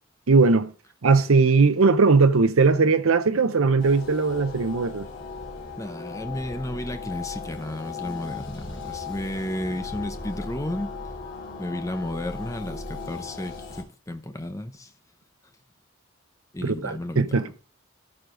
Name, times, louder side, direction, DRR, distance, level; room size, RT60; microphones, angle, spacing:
voice 1, 0.3-0.7 1.0-5.1 16.6-17.5, right 4 dB, 80° right, 0.7 m, -19 dB
sound 1, 3.8-13.8, left 4 dB, 60° left, 3.6 m, -37 dB
voice 2, 5.8-10.9 11.6-14.9 16.5-17.5, left 1 dB, 15° left, 0.8 m, -33 dB
14.0 x 4.9 x 3.9 m
head